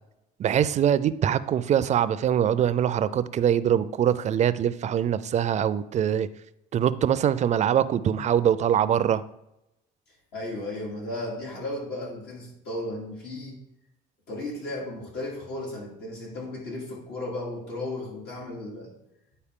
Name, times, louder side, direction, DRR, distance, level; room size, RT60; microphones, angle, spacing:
voice 1, 0.4-6.3 6.7-9.2, right 9 dB, 45° right, 15 dB, 0.4 m, -23 dB
voice 2, 10.3-13.6 14.3-18.9, left 1 dB, 90° left, -3 dB, 2.7 m, -35 dB
9.9 x 4.1 x 3.7 m, 0.87 s
cardioid pair, 110°, 17 cm